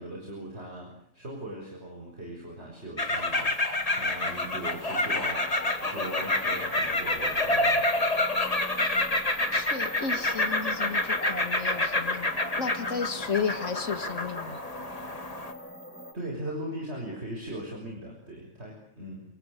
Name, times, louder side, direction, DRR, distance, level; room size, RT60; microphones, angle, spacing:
voice 1, 0.0-5.5 5.8-7.9 16.1-19.2, right 1 dB, 60° right, 0 dB, 6.6 m, -39 dB
sound 1, 3.0-15.5, left 2 dB, 30° left, 2.2 m, -28 dB
sound 2, 3.3-16.1, equal, 10° left, 3.2 m, -43 dB
voice 2, 9.5-14.6, left 5 dB, 90° left, 8 dB, 2.3 m, -33 dB
29.0 x 24.0 x 6.7 m, 0.67 s
omnidirectional pair, 1.3 m